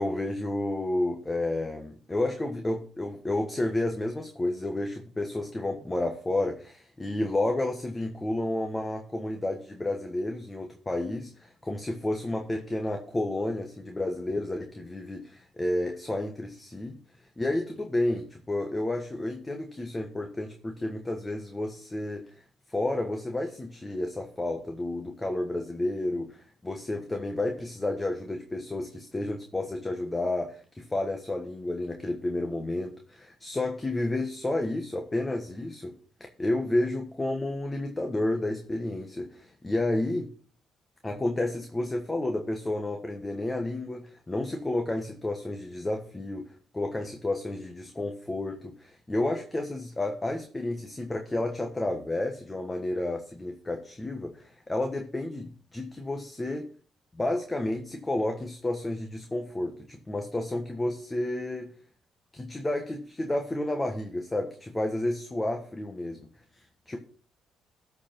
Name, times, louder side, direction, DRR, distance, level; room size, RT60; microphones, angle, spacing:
voice 1, 0.0-17.0 17.4-22.4 22.7-35.9 36.2-40.3 41.0-46.5 46.7-56.7 57.1-61.7 62.3-66.3 66.5-67.0, left 1 dB, 20° left, 4 dB, 1.3 m, -31 dB
13.0 x 4.8 x 5.9 m, 0.44 s
cardioid pair, 90°, 0 cm